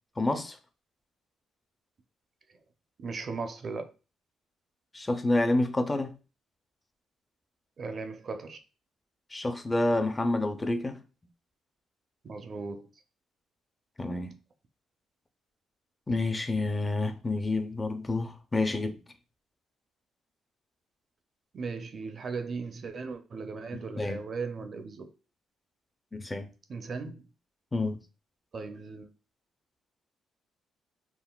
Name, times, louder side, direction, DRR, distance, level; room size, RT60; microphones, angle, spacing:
voice 1, 0.2-0.6 4.9-6.2 9.3-11.0 14.0-14.3 16.1-19.0 24.0-24.2 26.1-26.5 27.7-28.0, left 2 dB, 20° left, 0.4 m, -28 dB
voice 2, 3.0-3.9 7.8-8.6 12.2-12.9 21.5-25.1 26.7-27.3 28.5-29.1, right 4 dB, 45° right, 0.5 m, -37 dB
3.7 x 2.0 x 2.2 m
cardioid pair, 90°, 0 cm